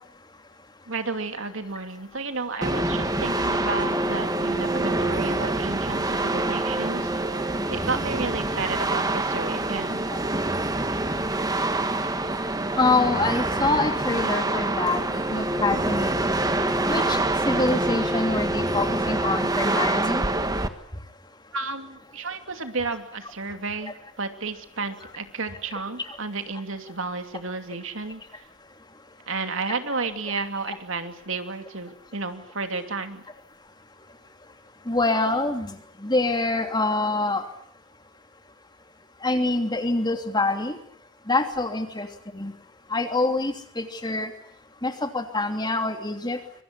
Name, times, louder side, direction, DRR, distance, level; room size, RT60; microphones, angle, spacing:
voice 1, 0.9-10.2 21.5-28.5 29.3-33.2, right 3 dB, 70° right, 7 dB, 2.7 m, -32 dB
sound 1, 2.6-20.7, right 2 dB, 20° right, 1.6 m, -26 dB
voice 2, 12.8-16.4 16.9-17.2 17.5-20.2 23.8-23.9 34.9-35.7 36.0-37.4 39.2-40.8 41.3-42.1 42.3-42.5 42.9-44.3 44.8-46.4, left 2 dB, 20° left, 6 dB, 2.9 m, -25 dB
25.0 x 24.0 x 8.3 m, 0.63 s
head